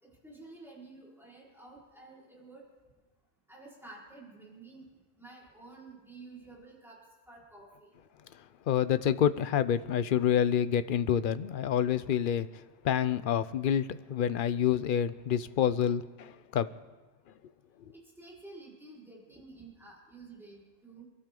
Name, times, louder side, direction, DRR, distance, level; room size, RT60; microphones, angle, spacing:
voice 1, 0.0-2.7 3.5-7.0 7.3-7.9 17.9-21.0, right 3 dB, ahead, -6 dB, 4.7 m, -51 dB
voice 2, 8.7-16.7, left 9 dB, 55° left, 14 dB, 0.7 m, -28 dB
28.0 x 12.5 x 3.8 m, 1.2 s
omnidirectional pair, 1.2 m